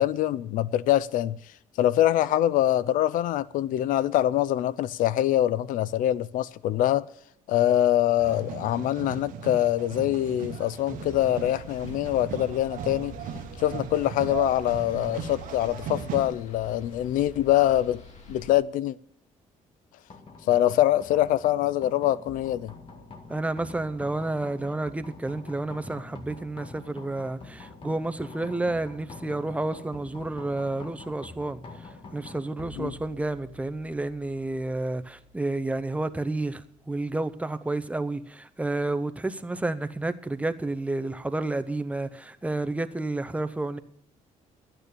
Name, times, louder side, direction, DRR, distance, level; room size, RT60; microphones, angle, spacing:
voice 1, 0.0-1.4 1.8-7.1 7.5-13.1 13.6-18.0 18.3-19.0 20.5-22.7 32.8-32.9, left 13 dB, 75° left, 0.5 m, -24 dB
sound 1, 8.2-16.4, right 7 dB, 80° right, 1.1 m, -37 dB
sound 2, 10.9-18.5, left 3 dB, 55° left, 2.3 m, -46 dB
sound 3, 20.1-37.3, left 3 dB, 40° left, 1.7 m, -47 dB
voice 2, 23.3-43.8, right 2 dB, 10° right, 0.6 m, -30 dB
12.0 x 9.0 x 6.8 m
cardioid pair, 120°, 14 cm